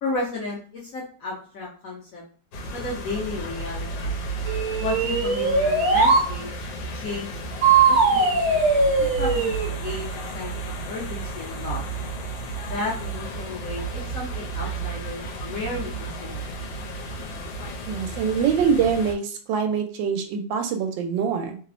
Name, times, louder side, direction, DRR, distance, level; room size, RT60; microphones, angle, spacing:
voice 1, 0.0-2.2 2.7-4.2 4.8-6.5 6.9-7.3 7.9-11.8 12.6-16.5, left 2 dB, 65° left, -3 dB, 0.9 m, -33 dB
sound 1, 2.5-19.2, right 3 dB, 90° left, 1.3 m, -33 dB
sound 2, 4.5-6.3 7.6-9.7, right 4 dB, 65° right, 1.1 m, -20 dB
voice 2, 17.9-21.6, right 6 dB, 85° right, 4 dB, 1.3 m, -24 dB
3.2 x 2.0 x 2.4 m, 0.42 s
omnidirectional pair, 2.0 m